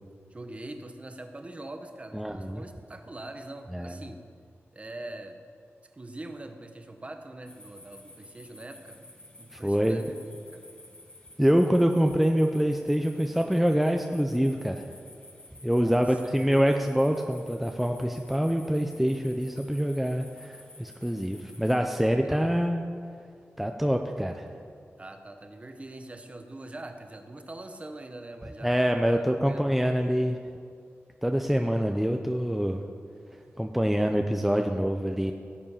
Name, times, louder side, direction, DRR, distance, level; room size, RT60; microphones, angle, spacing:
voice 1, 0.3-4.2 4.7-5.4 5.9-9.0 9.4-10.2 10.5-10.6 15.6-16.6 22.2-22.4 25.0-28.8 29.4-29.7, right 2 dB, 25° right, 6 dB, 1.0 m, -43 dB
voice 2, 2.1-2.6 3.7-3.9 9.5-10.0 11.4-14.8 15.6-22.8 23.6-24.5 28.6-30.4 31.2-32.8 33.6-35.3, equal, 5° right, 4 dB, 0.5 m, -25 dB
sound 1, 7.5-21.8, left 1 dB, 25° left, 1.5 m, -52 dB
17.0 x 7.6 x 5.7 m, 2.3 s
wide cardioid pair, 135°, 5 cm